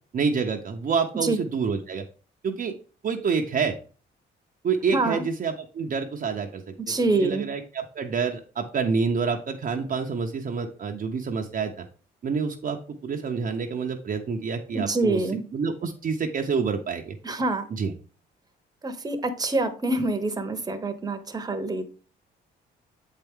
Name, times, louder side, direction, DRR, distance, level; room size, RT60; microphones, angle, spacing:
voice 1, 0.1-2.0 2.4-2.7 3.0-3.8 4.6-6.7 7.1-11.9 12.2-15.2 15.5-17.2 17.8-17.9, right 5 dB, 45° right, 3 dB, 0.7 m, -27 dB
voice 2, 4.9-5.2 6.8-7.4 14.7-15.4 17.2-17.7 18.8-21.9, right 2 dB, 20° right, 7 dB, 0.9 m, -26 dB
7.4 x 4.5 x 3.6 m, 0.38 s
cardioid pair, 90°, 20 cm